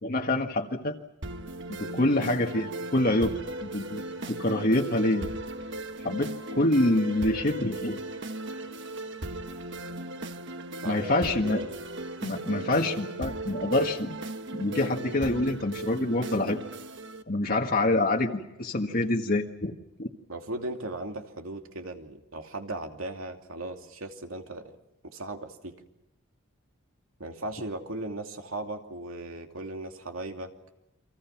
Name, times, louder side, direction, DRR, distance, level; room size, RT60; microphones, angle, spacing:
voice 1, 0.0-0.9 1.7-3.3 3.6-5.3 6.0-8.0 10.8-11.6 12.2-14.2 14.5-16.6 17.3-19.7 20.0-20.1, left 2 dB, 45° left, 1 dB, 1.6 m, -26 dB
sound 1, 1.2-17.2, right 1 dB, 60° right, 1.4 m, -37 dB
voice 2, 10.8-11.7 20.3-24.8 25.0-25.8 27.2-30.5, right 2 dB, 85° right, 4 dB, 2.7 m, -37 dB
30.0 x 24.5 x 6.0 m, 0.93 s
head